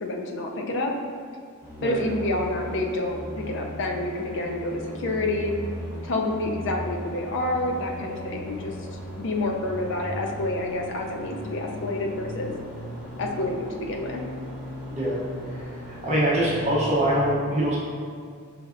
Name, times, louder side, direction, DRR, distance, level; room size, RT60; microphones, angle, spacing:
voice 1, 0.0-0.9 1.8-5.5 6.0-12.5 13.2-14.2, left 2 dB, 55° left, 1 dB, 0.5 m, -28 dB
sound 1, 1.6-17.2, left 1 dB, 40° left, 1.4 m, -38 dB
voice 2, 16.0-17.8, right 1 dB, 30° right, -7 dB, 0.7 m, -23 dB
5.1 x 3.3 x 2.5 m, 2.1 s
head